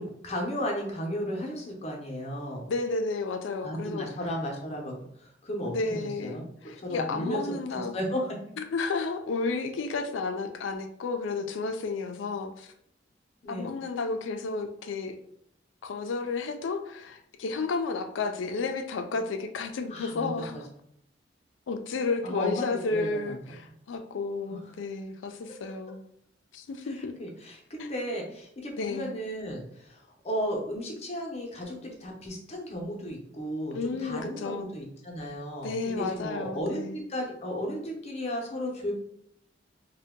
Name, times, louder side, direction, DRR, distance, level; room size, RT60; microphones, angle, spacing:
voice 1, 0.0-2.7 3.6-6.5 6.8-7.4 7.7-8.3 13.4-13.7 19.9-20.6 22.2-23.4 24.5-24.6 27.0-38.9, equal, 35° left, 0 dB, 0.7 m, -34 dB
voice 2, 2.7-4.1 5.7-7.9 8.7-12.7 13.5-15.2 15.8-20.6 21.7-26.0 26.5-27.1 27.8-27.9 28.8-29.1 33.7-34.7 35.6-37.0, left 3 dB, 85° left, 7 dB, 0.4 m, -32 dB
2.7 x 2.2 x 3.5 m, 0.71 s
head